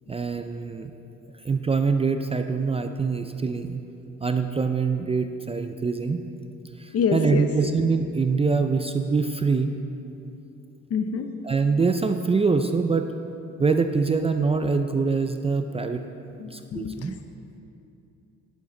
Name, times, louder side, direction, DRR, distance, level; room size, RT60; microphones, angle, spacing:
voice 1, 0.1-0.9 1.4-3.8 4.2-6.2 6.8-9.8 11.4-13.1 13.6-16.0 16.5-17.2, right 4 dB, 20° right, 7 dB, 0.4 m, -24 dB
voice 2, 6.9-7.5 10.9-11.3 16.4-17.1, left 6 dB, 50° left, 8 dB, 0.7 m, -26 dB
11.0 x 8.9 x 3.8 m, 2.7 s
cardioid pair, 90°, 30 cm